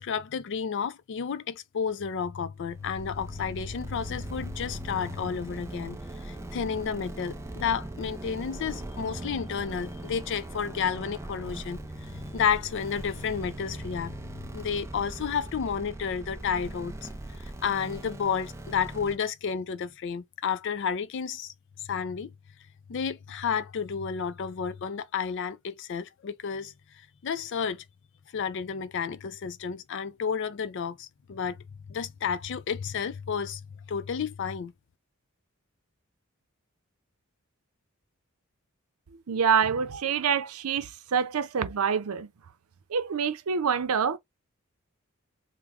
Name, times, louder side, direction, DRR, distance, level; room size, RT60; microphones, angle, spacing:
voice 1, 0.0-6.0 6.2-11.8 12.1-14.2 14.5-17.1 17.4-21.5 21.8-22.3 22.9-26.7 27.2-27.8 28.3-33.6 33.9-34.7, left 6 dB, 60° left, 0.4 m, -31 dB
sound 1, 2.6-19.2, right 1 dB, 15° right, 0.4 m, -40 dB
voice 2, 39.3-42.3 42.9-44.2, right 6 dB, 90° right, 0.6 m, -26 dB
3.5 x 2.1 x 3.4 m
head